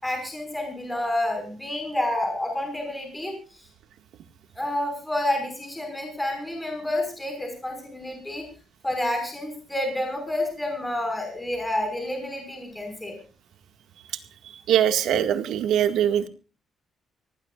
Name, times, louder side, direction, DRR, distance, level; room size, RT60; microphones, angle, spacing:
voice 1, 0.0-3.3 4.5-8.4 8.8-13.1, left 1 dB, 5° left, 4 dB, 5.7 m, -29 dB
voice 2, 14.7-16.3, right 10 dB, 70° right, 8 dB, 1.9 m, -22 dB
25.0 x 18.5 x 2.5 m, 0.35 s
cardioid pair, 175°, 0 cm